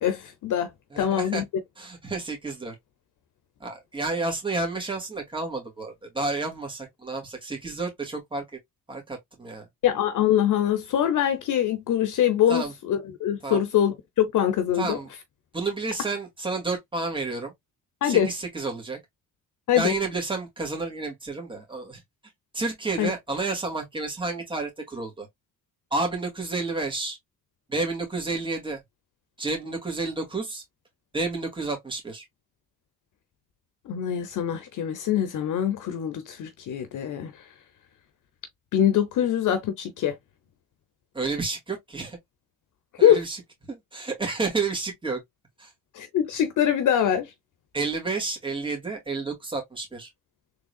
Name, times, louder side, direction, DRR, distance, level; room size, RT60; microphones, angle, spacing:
voice 1, 0.0-1.4 9.8-15.0 18.0-18.3 19.7-19.9 23.0-23.1 33.9-37.3 38.7-40.2 43.0-43.2 45.9-47.3, left 10 dB, 75° left, 0.7 m, -23 dB
voice 2, 0.9-1.4 1.8-2.8 3.6-8.4 8.9-9.7 12.5-12.7 13.4-13.6 14.7-15.1 15.5-17.5 18.0-19.0 19.8-22.0 22.5-25.3 25.9-27.2 27.7-28.8 29.4-30.6 31.1-32.2 41.1-42.2 43.0-43.4 43.7-45.2 45.6-45.7 47.7-50.1, right 3 dB, 15° right, 2.0 m, -30 dB
3.7 x 3.3 x 2.3 m
cardioid pair, 75°, 31 cm